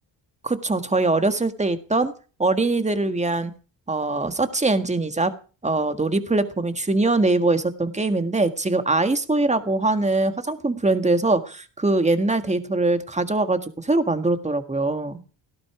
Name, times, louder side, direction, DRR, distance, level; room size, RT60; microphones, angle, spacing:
voice 1, 0.4-2.1 2.4-3.5 3.9-5.3 5.6-15.2, right 2 dB, 15° right, 9 dB, 1.7 m, -22 dB
18.0 x 16.0 x 4.9 m, 0.38 s
cardioid pair, 135°, 44 cm